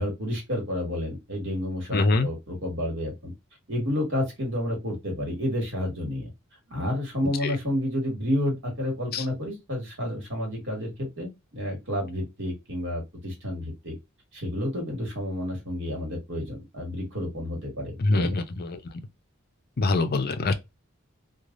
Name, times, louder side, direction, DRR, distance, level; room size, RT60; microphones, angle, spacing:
voice 1, 0.0-3.3 3.7-6.3 6.7-14.0 14.3-18.4, left 1 dB, 60° right, 1.7 m, -30 dB
voice 2, 1.9-2.3 7.4-7.5 9.1-9.2 18.0-18.8 19.8-20.5, left 2 dB, 45° left, 0.5 m, -24 dB
3.2 x 2.4 x 2.4 m
head